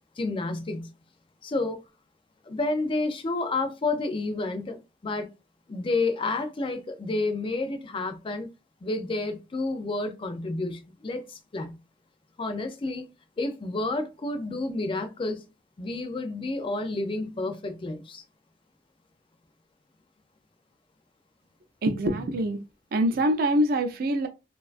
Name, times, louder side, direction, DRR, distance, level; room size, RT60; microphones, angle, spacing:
voice 1, 0.2-0.9 1.4-1.8 2.4-5.3 5.7-8.5 8.8-11.8 12.4-13.1 13.4-15.4 15.8-18.2, left 2 dB, 30° left, 0.4 m, -30 dB
voice 2, 21.8-22.6 22.9-24.3, right 1 dB, 55° right, 0.4 m, -24 dB
2.5 x 2.2 x 2.4 m
head